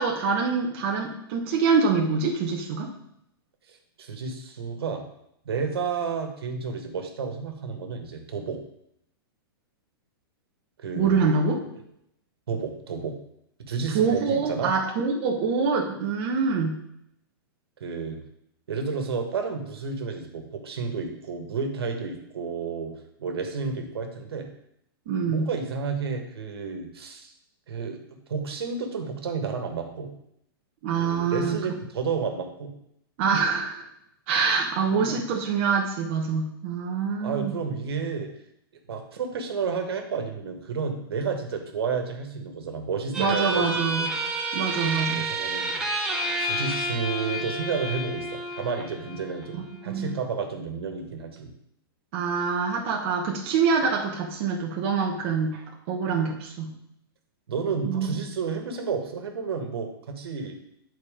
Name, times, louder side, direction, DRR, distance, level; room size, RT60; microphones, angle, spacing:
voice 1, 0.0-2.9 11.0-11.6 13.9-16.8 25.1-25.5 30.8-31.6 33.2-33.9 34.3-37.5 43.2-44.1 44.5-45.3 49.5-50.1 52.1-56.7 57.8-58.2, right 5 dB, 30° right, -1 dB, 0.9 m, -25 dB
voice 2, 3.7-5.0 5.4-8.6 10.8-11.2 12.5-13.2 13.6-14.7 17.8-18.2 18.7-22.9 23.2-24.5 25.2-27.3 27.7-30.1 31.0-32.7 34.9-35.2 37.2-38.3 38.9-44.1 45.1-45.8 46.4-51.5 57.5-60.6, right 5 dB, 75° right, 4 dB, 1.6 m, -31 dB
sound 1, 43.1-50.2, right 1 dB, 5° right, 0.8 m, -30 dB
9.4 x 4.3 x 5.0 m, 0.75 s
hypercardioid pair, 175°, 13 cm